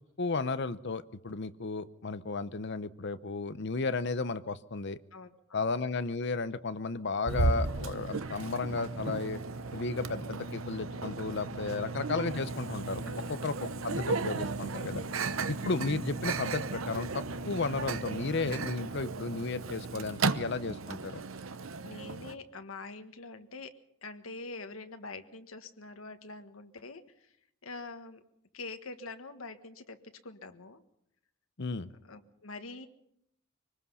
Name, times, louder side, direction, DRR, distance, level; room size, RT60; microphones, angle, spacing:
voice 1, 0.2-5.0 5.5-9.4 9.7-13.0 13.3-15.0 15.5-21.2 31.6-31.9, left 3 dB, 55° left, 14 dB, 0.8 m, -34 dB
voice 2, 5.1-5.7 11.6-11.7 13.0-13.3 14.8-15.1 21.8-27.4 27.6-28.2 28.5-30.8 32.0-32.9, left 3 dB, 90° left, 8 dB, 1.5 m, -45 dB
Microwave oven, 7.3-22.3, right 3 dB, 80° right, 0.9 m, -35 dB
24.0 x 19.5 x 5.6 m, 0.76 s
head